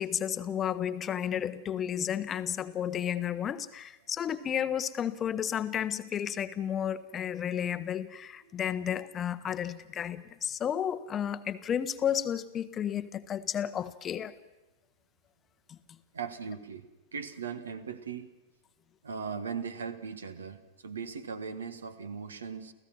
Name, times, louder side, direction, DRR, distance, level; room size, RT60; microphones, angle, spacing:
voice 1, 0.0-14.3 15.7-15.8, left 9 dB, 25° left, 13 dB, 0.9 m, -32 dB
voice 2, 16.1-18.3 19.0-22.7, right 6 dB, 70° right, 12 dB, 1.5 m, -39 dB
30.0 x 15.5 x 6.0 m, 1.0 s
figure-of-eight pair, 95°, 0 cm